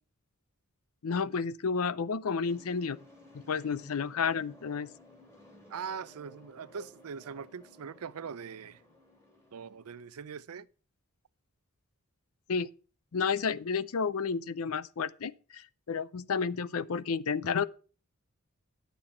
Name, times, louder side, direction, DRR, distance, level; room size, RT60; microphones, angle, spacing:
voice 1, 1.0-3.0 3.3-4.9 12.5-12.7 13.1-17.6, left 5 dB, 70° left, 0.5 m, -31 dB
sound 1, 2.4-10.2, left 1 dB, 10° left, 2.8 m, -57 dB
voice 2, 5.7-8.8 9.5-10.7, right 6 dB, 75° right, 0.5 m, -41 dB
10.0 x 6.9 x 5.7 m
head